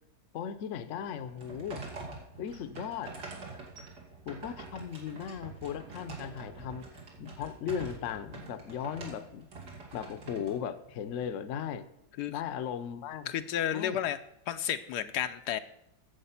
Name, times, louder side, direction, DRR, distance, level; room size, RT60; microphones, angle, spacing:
voice 1, 0.3-1.8 2.4-3.2 4.3-6.8 7.2-9.5 9.9-11.9 12.3-13.3 13.7-14.0, left 8 dB, 60° left, 11 dB, 0.9 m, -37 dB
sound 1, 1.1-11.3, right 3 dB, 75° right, 2.7 m, -45 dB
voice 2, 13.3-14.2 14.5-15.6, left 10 dB, 80° left, 10 dB, 1.2 m, -31 dB
10.0 x 7.3 x 5.6 m, 0.81 s
omnidirectional pair, 1.8 m